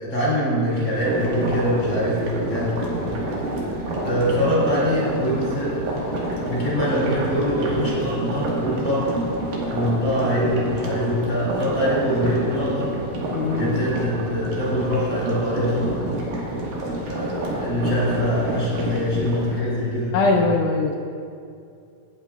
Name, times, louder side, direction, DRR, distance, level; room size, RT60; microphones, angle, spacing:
voice 1, 0.0-2.7 4.0-9.1 9.7-12.9 13.5-15.9 17.0-20.4, equal, 35° left, -7 dB, 3.3 m, -24 dB
sound 1, 0.9-19.6, right 1 dB, 75° right, 3.2 m, -28 dB
voice 2, 13.3-13.8 20.1-20.9, left 3 dB, 80° left, 1 dB, 1.9 m, -21 dB
18.0 x 8.8 x 2.3 m, 2.5 s
omnidirectional pair, 4.2 m